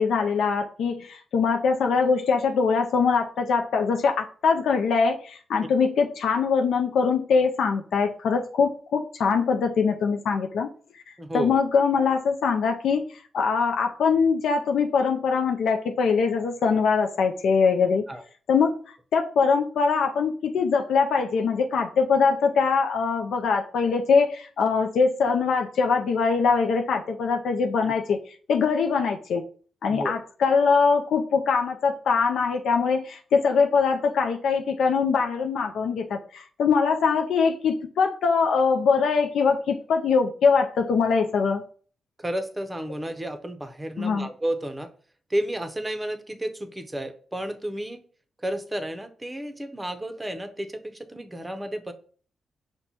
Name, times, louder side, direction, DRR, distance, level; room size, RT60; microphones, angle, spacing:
voice 1, 0.0-10.7 11.3-18.0 18.5-18.8 19.1-28.2 28.5-29.4 29.8-41.6 44.0-44.3, left 5 dB, 80° left, 3 dB, 0.4 m, -22 dB
voice 2, 11.2-11.6 18.1-18.2 27.8-27.9 29.9-30.2 42.2-44.9 45.3-48.0 48.4-51.9, right 1 dB, 15° right, 8 dB, 0.6 m, -32 dB
5.8 x 2.2 x 4.1 m, 0.43 s
cardioid pair, 100°, 0 cm